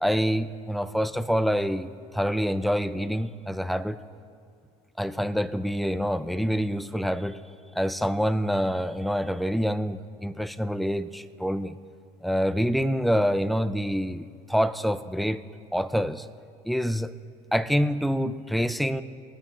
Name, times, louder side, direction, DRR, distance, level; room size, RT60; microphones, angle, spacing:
voice 1, 0.0-4.0 5.0-7.4 7.8-11.8 12.2-15.4 15.7-16.3 16.7-17.1 17.5-19.0, equal, ahead, 12 dB, 0.4 m, -26 dB
24.0 x 9.4 x 3.1 m, 2.2 s
supercardioid pair, 115°, 16 cm